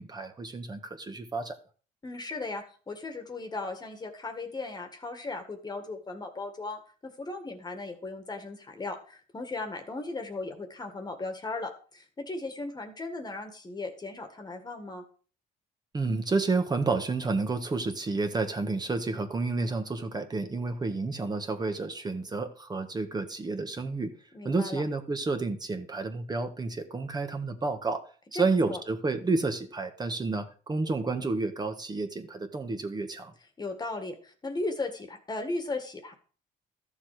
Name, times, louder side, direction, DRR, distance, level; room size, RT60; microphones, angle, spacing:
voice 1, 0.0-1.6 15.9-24.1 24.4-28.0 28.3-33.3, right 3 dB, 25° right, 7 dB, 1.5 m, -30 dB
voice 2, 2.0-15.0 24.3-24.8 28.3-28.8 33.6-36.1, left 2 dB, 25° left, 6 dB, 1.8 m, -37 dB
13.0 x 7.2 x 4.9 m, 0.40 s
cardioid pair, 110°, 17 cm